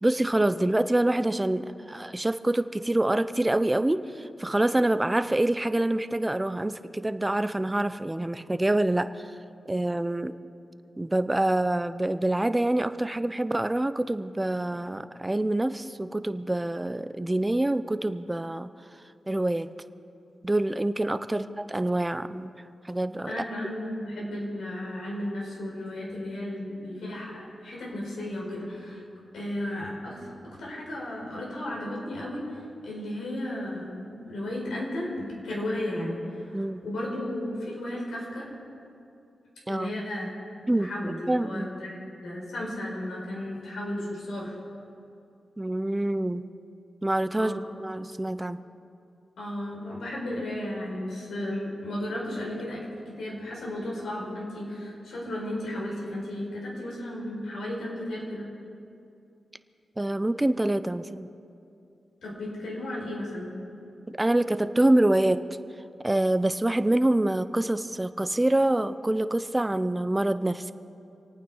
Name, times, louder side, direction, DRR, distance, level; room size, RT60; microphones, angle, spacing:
voice 1, 0.0-9.4 9.7-10.4 11.0-18.7 19.3-19.7 20.4-22.5 22.8-23.4 36.5-36.8 39.7-40.0 40.7-40.9 41.3-41.7 45.6-46.5 47.0-48.6 60.0-61.3 64.1-65.5 66.0-70.7, right 1 dB, 15° right, 12 dB, 0.7 m, -26 dB
voice 2, 23.2-29.0 29.3-38.5 39.7-40.3 40.8-44.5 47.4-47.6 49.4-58.5 62.2-63.5, left 1 dB, 90° left, -3 dB, 4.7 m, -34 dB
27.0 x 9.2 x 5.5 m, 2.6 s
cardioid pair, 70°, 0 cm